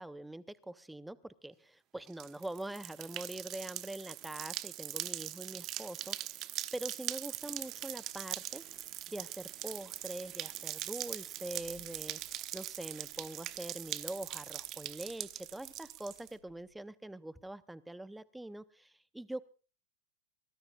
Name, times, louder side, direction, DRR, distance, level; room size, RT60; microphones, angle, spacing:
voice 1, 0.0-8.6 9.1-19.4, right 1 dB, 5° right, 18 dB, 0.7 m, -44 dB
sound 1, 2.1-16.3, right 14 dB, 35° right, 1.0 m, -42 dB
sound 2, 7.4-16.7, left 3 dB, 80° left, 2.9 m, -65 dB
23.0 x 20.5 x 2.4 m, 0.36 s
figure-of-eight pair, 90°, 0 cm